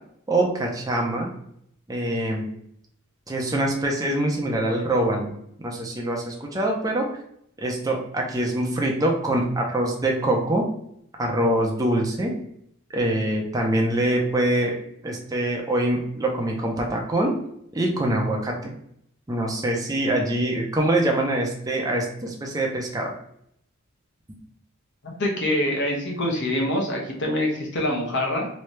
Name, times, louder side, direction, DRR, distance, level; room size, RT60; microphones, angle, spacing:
voice 1, 0.3-1.3 1.9-2.5 3.3-7.1 7.6-10.7 11.2-12.3 12.9-14.8 15.0-17.3 17.7-18.7 19.3-23.1 24.3-24.4, right 1 dB, 15° right, 0 dB, 0.5 m, -24 dB
voice 2, 25.2-28.5, left 1 dB, 60° left, -1 dB, 1.0 m, -25 dB
3.2 x 2.7 x 3.1 m, 0.72 s
head